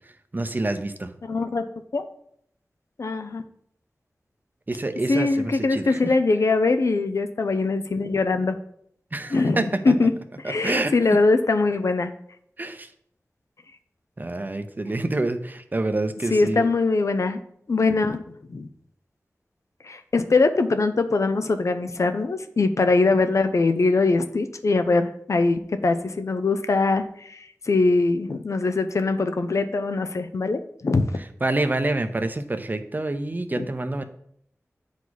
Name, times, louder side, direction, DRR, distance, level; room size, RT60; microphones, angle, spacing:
voice 1, 0.3-1.1 4.7-6.1 9.1-9.9 10.4-11.0 12.6-12.9 14.2-16.6 31.4-34.0, right 2 dB, 35° right, 8 dB, 0.7 m, -27 dB
voice 2, 1.3-1.6 1.9-2.0 3.0-3.4 5.1-8.6 9.3-12.1 16.3-17.4 17.7-18.7 19.8-31.1 33.6-33.7, left 3 dB, 75° left, 8 dB, 0.6 m, -22 dB
8.3 x 4.9 x 4.0 m, 0.69 s
wide cardioid pair, 80°, 5 cm